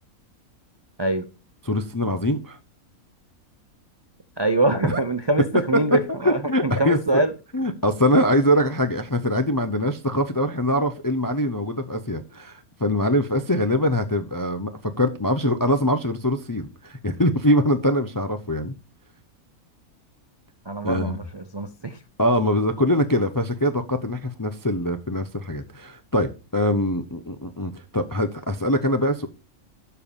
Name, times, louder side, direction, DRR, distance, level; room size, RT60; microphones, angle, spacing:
voice 1, 1.7-2.6 4.8-5.0 6.2-7.2 7.5-18.8 20.8-21.2 22.2-29.3, left 1 dB, 30° left, 0.4 m, -23 dB
voice 2, 4.4-7.3 20.7-22.0, right 2 dB, 45° right, 0.3 m, -24 dB
12.0 x 4.5 x 5.3 m
omnidirectional pair, 1.5 m